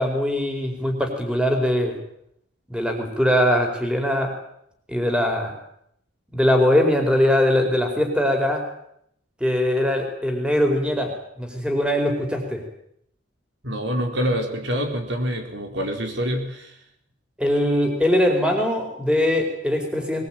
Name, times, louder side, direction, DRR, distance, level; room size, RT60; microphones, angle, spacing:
voice 1, 0.0-2.0 2.7-4.3 4.9-5.5 6.3-8.6 9.4-12.6 17.4-20.3, left 1 dB, 5° right, 3 dB, 4.6 m, -21 dB
voice 2, 13.6-16.8, equal, 60° right, 4 dB, 4.3 m, -26 dB
22.5 x 21.5 x 9.0 m, 0.73 s
head